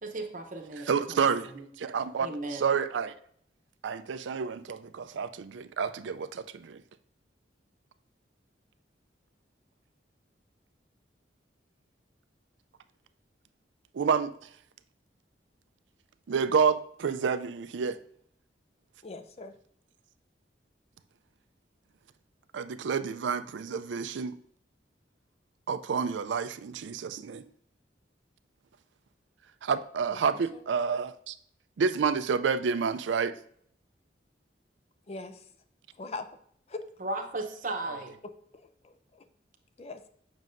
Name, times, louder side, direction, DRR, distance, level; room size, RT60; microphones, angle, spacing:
voice 1, 0.0-1.7 2.2-2.7 37.0-38.1, right 2 dB, 45° right, 0.8 m, -36 dB
voice 2, 0.9-1.5 1.8-3.1 3.8-6.8 13.9-14.3 16.3-18.0 22.5-24.4 25.7-27.4 29.6-31.4 31.8-33.4 37.9-38.0, right 6 dB, 85° right, 0.4 m, -29 dB
voice 3, 19.0-19.5 30.1-30.2 35.1-35.4 36.0-36.3 36.7-36.9 38.8-39.2 39.8-40.0, left 3 dB, 35° left, 0.4 m, -40 dB
7.4 x 6.1 x 2.6 m
head